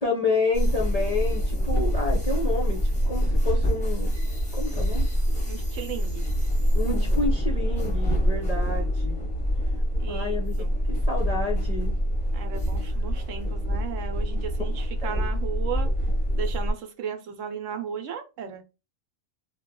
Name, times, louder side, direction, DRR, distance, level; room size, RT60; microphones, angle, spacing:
voice 1, 0.0-4.1 4.5-5.1 6.7-9.3 10.1-11.9 15.0-15.3, left 3 dB, 45° left, -2 dB, 0.5 m, -30 dB
sound 1, 0.5-16.7, equal, 5° left, 0.7 m, -25 dB
voice 2, 5.5-6.3 10.0-10.7 12.3-15.9 16.3-18.6, right 7 dB, 70° right, 5 dB, 1.0 m, -35 dB
2.7 x 2.3 x 3.6 m, 0.29 s
omnidirectional pair, 1.4 m